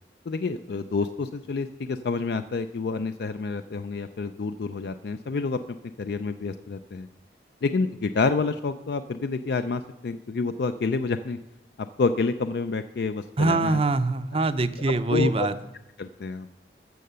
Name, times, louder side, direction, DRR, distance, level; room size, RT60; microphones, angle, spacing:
voice 1, 0.3-7.1 7.6-11.4 11.8-13.8 15.1-15.5 16.0-16.5, left 4 dB, 60° left, 9 dB, 0.4 m, -28 dB
voice 2, 13.4-15.6, right 3 dB, 35° right, 12 dB, 0.5 m, -24 dB
14.0 x 6.6 x 6.7 m, 0.92 s
head